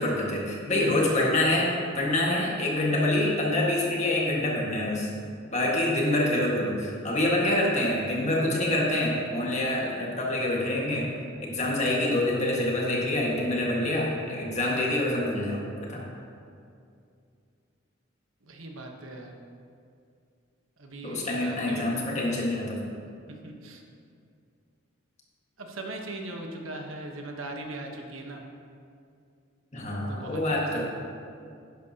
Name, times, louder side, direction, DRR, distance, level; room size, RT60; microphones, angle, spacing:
voice 1, 0.0-5.1 5.5-11.1 11.4-15.6 15.9-16.1 21.0-22.9 29.7-30.8, left 1 dB, 35° left, -3 dB, 1.7 m, -26 dB
voice 2, 18.4-19.3 20.8-21.8 23.3-23.8 25.6-28.4 30.1-30.8, right 2 dB, 90° right, 2 dB, 1.2 m, -39 dB
11.5 x 10.5 x 2.9 m, 2.4 s
head